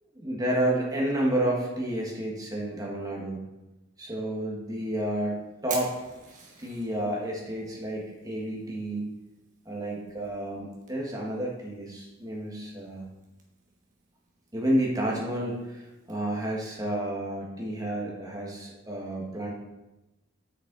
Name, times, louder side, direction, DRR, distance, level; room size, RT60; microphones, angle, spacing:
voice 1, 0.2-3.4 4.0-5.9 6.6-9.2 9.6-13.0 14.5-19.5, right 1 dB, 15° right, -2 dB, 1.5 m, -30 dB
Fire, 4.6-16.2, right 5 dB, 35° right, 1.3 m, -48 dB
7.3 x 6.4 x 4.0 m, 1.0 s
head